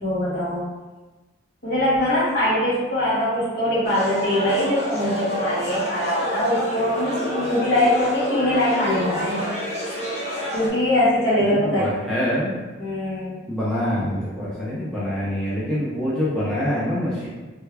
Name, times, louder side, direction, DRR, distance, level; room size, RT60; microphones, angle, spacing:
voice 1, 0.0-0.6 1.6-9.4 10.5-11.8 12.8-13.3, left 1 dB, 55° left, -10 dB, 1.5 m, -22 dB
sound 1, 3.8-10.7, equal, 35° left, 0.9 m, -29 dB
voice 2, 11.4-12.6 13.5-17.3, equal, 5° left, -10 dB, 0.5 m, -25 dB
3.3 x 2.3 x 3.3 m, 1.2 s
head